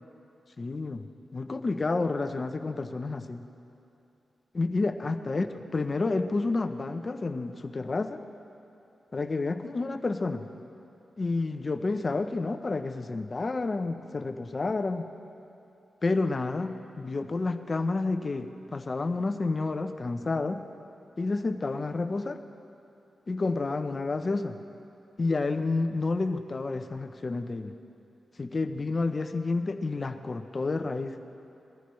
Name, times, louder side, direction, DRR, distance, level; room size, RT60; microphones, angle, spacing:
voice 1, 0.6-3.4 4.5-5.5 5.7-8.2 9.1-10.5 11.2-15.0 16.0-20.7 21.2-22.4 23.3-24.6 25.2-27.8 28.4-31.2, left 3 dB, 35° left, 8 dB, 0.7 m, -30 dB
21.5 x 14.5 x 3.2 m, 2.8 s
wide cardioid pair, 120°, 0 cm